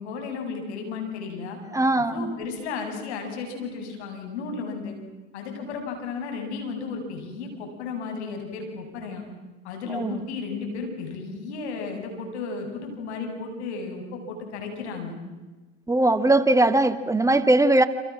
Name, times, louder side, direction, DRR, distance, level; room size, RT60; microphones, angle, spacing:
voice 1, 0.0-1.6 2.0-5.0 5.3-9.3 9.6-15.2, left 4 dB, 80° left, 4 dB, 8.0 m, -34 dB
voice 2, 1.7-2.4 9.9-10.2 15.9-17.8, right 2 dB, 10° right, 9 dB, 2.4 m, -20 dB
28.5 x 27.0 x 7.6 m, 1.2 s
hypercardioid pair, 80°, 33 cm